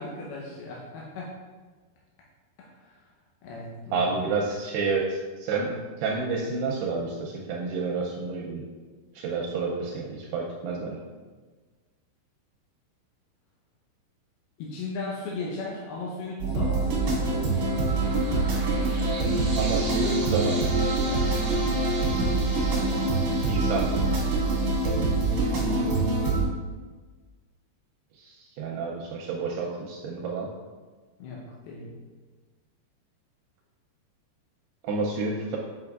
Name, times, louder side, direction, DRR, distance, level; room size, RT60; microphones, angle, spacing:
voice 1, 0.0-1.4 2.6-3.1 3.4-4.1 14.6-17.0 21.0-21.2 25.5-26.0 31.2-31.9, left 3 dB, 75° left, -4 dB, 2.5 m, -37 dB
voice 2, 3.9-5.7 6.0-8.6 9.2-11.0 19.6-20.7 23.5-23.8 28.2-30.5 34.8-35.6, right 4 dB, 80° right, -1 dB, 2.4 m, -29 dB
sound 1, 16.4-26.4, right 2 dB, 65° right, 1.7 m, -25 dB
7.9 x 5.1 x 2.4 m, 1.4 s
omnidirectional pair, 5.1 m